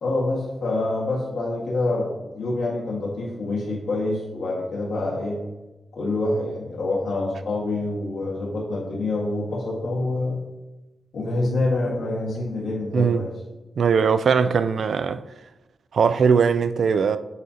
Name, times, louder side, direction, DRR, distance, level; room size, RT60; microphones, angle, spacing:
voice 1, 0.0-5.4 5.9-10.4 11.1-13.3, left 2 dB, 80° left, 1.6 m, -26 dB
voice 2, 12.9-13.2 13.8-15.2 15.9-17.2, right 6 dB, 60° right, 0.3 m, -20 dB
8.0 x 2.8 x 4.9 m
wide cardioid pair, 170°, 0 cm